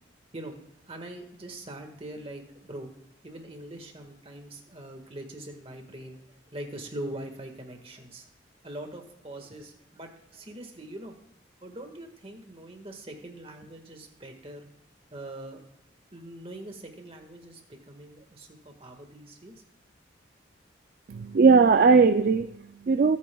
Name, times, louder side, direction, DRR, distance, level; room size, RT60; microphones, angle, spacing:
voice 1, 0.9-2.9 3.2-8.3 8.6-11.2 11.6-14.7 15.1-15.6 16.1-19.5, right 1 dB, 30° right, 4 dB, 1.6 m, -42 dB
voice 2, 21.1-23.2, right 4 dB, 50° right, 10 dB, 0.3 m, -19 dB
23.5 x 8.7 x 2.3 m, 0.82 s
head